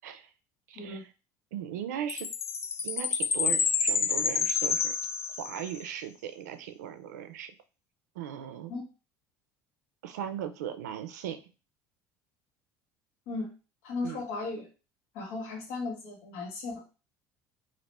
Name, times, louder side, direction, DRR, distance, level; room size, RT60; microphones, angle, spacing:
voice 1, 0.7-1.1 1.5-2.3 2.8-5.0 5.4-7.6 8.2-8.7 10.0-11.4 14.0-14.2, right 9 dB, 90° right, 9 dB, 0.4 m, -38 dB
Chime, 2.1-5.8, left 5 dB, 30° left, 0.4 m, -29 dB
voice 2, 13.8-14.7 15.1-16.8, left 3 dB, 75° left, 0 dB, 1.2 m, -36 dB
2.9 x 2.5 x 3.2 m, 0.32 s
supercardioid pair, 85°, 9 cm